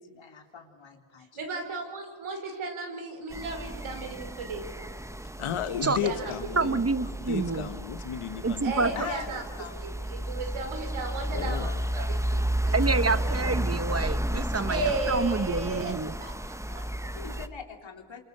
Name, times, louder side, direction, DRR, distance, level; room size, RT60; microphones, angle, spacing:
voice 1, 0.0-1.3 6.1-6.4 7.0-7.1 9.0-10.3 16.7-18.2, left 7 dB, 65° left, 3 dB, 3.6 m, -43 dB
voice 2, 1.3-4.9 5.8-6.3 6.6-6.7 8.6-9.4 9.8-13.5 14.7-15.9 16.2-16.8, right 2 dB, 80° right, 3 dB, 5.5 m, -35 dB
sound 1, 3.3-17.5, right 1 dB, 5° right, 1.1 m, -32 dB
voice 3, 5.4-6.8 7.2-9.1 11.3-11.8, left 9 dB, 85° left, 11 dB, 1.5 m, -34 dB
voice 4, 6.6-7.7 8.4-8.9 12.7-16.1, right 4 dB, 30° right, 13 dB, 1.3 m, -27 dB
28.5 x 25.5 x 6.8 m, 1.4 s
cardioid pair, 55°, 49 cm